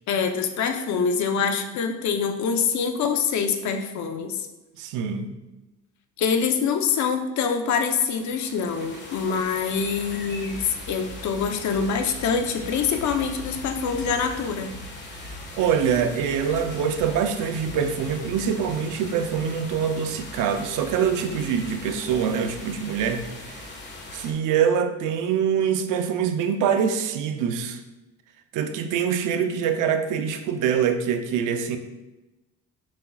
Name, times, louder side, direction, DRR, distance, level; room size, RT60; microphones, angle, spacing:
voice 1, 0.1-4.4 6.2-14.7, left 6 dB, 65° left, 6 dB, 0.8 m, -25 dB
voice 2, 4.8-5.3 15.1-15.3 15.6-23.7 24.1-27.8 28.5-31.8, right 7 dB, 85° right, 7 dB, 0.7 m, -24 dB
sound 1, 7.7-24.3, left 2 dB, 35° left, 1.4 m, -39 dB
7.5 x 5.8 x 2.4 m, 1.0 s
cardioid pair, 110°, 30 cm